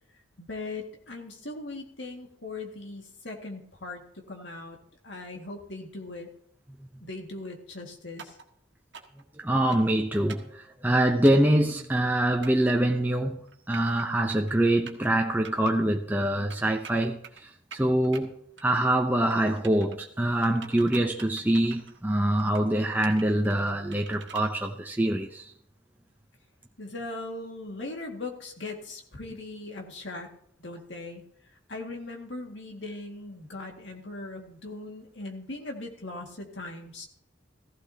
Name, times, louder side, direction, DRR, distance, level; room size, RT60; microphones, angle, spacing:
voice 1, 0.4-4.8 5.0-6.3 7.0-8.4 26.8-30.3 30.6-37.1, left 2 dB, 70° left, 2.0 m, -39 dB
sound 1, 8.2-8.4 8.9-9.2 9.7-10.0 10.3-10.5 11.2-11.5 12.4-12.7 13.5-14.0 14.3-14.5 14.9-15.1 15.4-15.7 16.5-17.4 17.7-18.2 18.6-19.0 19.3-20.0 20.4-22.0 22.4-22.7 23.0-24.5, right 6 dB, 65° right, 1.5 m, -46 dB
voice 2, 9.4-13.4 13.7-18.3 18.6-25.5, right 1 dB, 10° right, 0.6 m, -25 dB
15.0 x 15.0 x 2.8 m
head